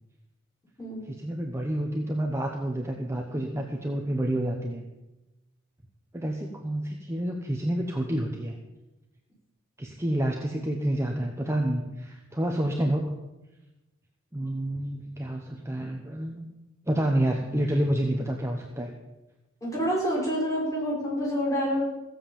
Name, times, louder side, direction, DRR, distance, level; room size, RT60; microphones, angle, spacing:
voice 1, 1.1-4.8 6.1-8.6 9.8-13.1 14.3-16.4 16.9-18.9, right 1 dB, 15° right, 1 dB, 1.1 m, -29 dB
voice 2, 19.6-21.8, equal, 15° left, -5 dB, 5.3 m, -27 dB
16.0 x 7.8 x 7.1 m, 1.0 s
head